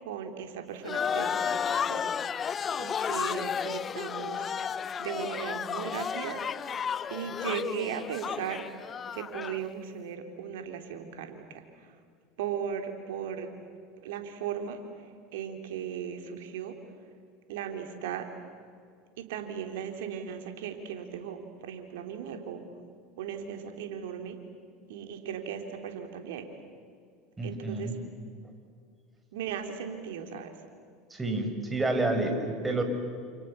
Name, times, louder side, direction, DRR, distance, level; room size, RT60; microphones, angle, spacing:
voice 1, 0.0-2.1 2.8-4.5 5.0-6.4 7.1-8.6 9.1-11.4 12.4-13.5 14.0-14.8 15.3-16.8 17.5-18.3 19.2-21.4 21.6-22.6 23.2-24.4 24.9-26.5 27.4-27.9 29.3-30.5, right 8 dB, 75° right, 5 dB, 3.7 m, -37 dB
sound 1, 0.9-9.6, left 7 dB, 35° left, 0.8 m, -32 dB
voice 2, 27.4-28.0 31.1-32.8, right 2 dB, 15° right, 5 dB, 6.1 m, -29 dB
29.5 x 28.0 x 7.1 m, 2.2 s
hypercardioid pair, 80°, 0 cm